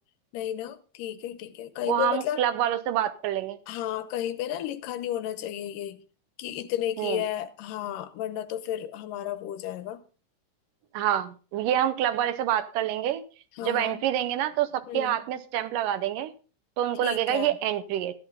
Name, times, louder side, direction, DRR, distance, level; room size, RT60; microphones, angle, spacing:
voice 1, 0.3-2.4 3.7-6.0 6.4-10.0 13.6-14.0 14.9-15.2 17.0-17.5, left 11 dB, 80° left, 2.4 m, -33 dB
voice 2, 1.9-3.6 7.0-7.2 10.9-13.2 13.6-16.3 16.8-18.1, right 11 dB, 80° right, 2.4 m, -27 dB
13.5 x 11.0 x 3.8 m
omnidirectional pair, 3.8 m